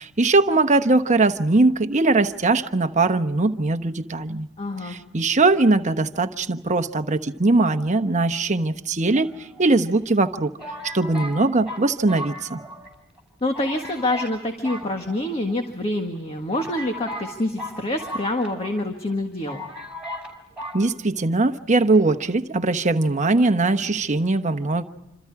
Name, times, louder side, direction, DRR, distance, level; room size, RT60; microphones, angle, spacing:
voice 1, 0.0-4.5 4.9-9.3 9.6-10.5 10.9-12.6 20.7-24.8, right 3 dB, 35° right, 8 dB, 1.0 m, -20 dB
voice 2, 4.6-5.0 13.4-19.6, left 1 dB, 30° left, 4 dB, 1.7 m, -26 dB
sound 1, 9.1-9.9 10.6-12.9 13.2-13.3 13.5-14.4 14.6-15.6 16.2-16.3 16.5-18.8 19.1-19.2 19.5-20.3 20.6-20.8, equal, 5° right, 5.2 m, -36 dB
27.5 x 26.5 x 4.8 m, 0.95 s
head